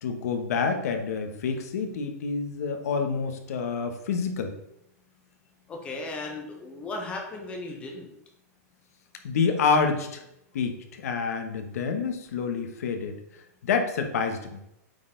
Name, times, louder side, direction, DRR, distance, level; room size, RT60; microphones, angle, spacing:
voice 1, 0.0-4.5 9.2-10.2 10.5-13.2 13.6-14.6, left 5 dB, 65° left, 6 dB, 1.1 m, -28 dB
voice 2, 5.7-8.1, left 2 dB, 15° left, 2 dB, 1.0 m, -36 dB
8.6 x 4.1 x 3.8 m, 0.81 s
supercardioid pair, 175°, 9 cm